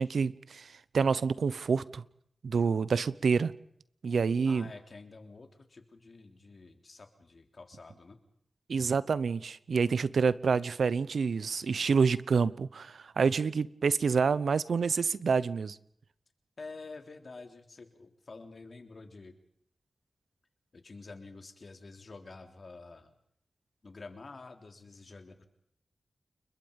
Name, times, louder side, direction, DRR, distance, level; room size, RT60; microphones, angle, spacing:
voice 1, 0.0-2.0 2.4-3.5 4.0-4.7 8.7-15.8, right 5 dB, 85° right, 0.8 m, -28 dB
voice 2, 4.4-8.2 16.6-19.3 20.7-23.1 23.8-25.5, left 3 dB, 55° left, 3.4 m, -48 dB
30.0 x 22.0 x 5.4 m
wide cardioid pair, 70°, 0 cm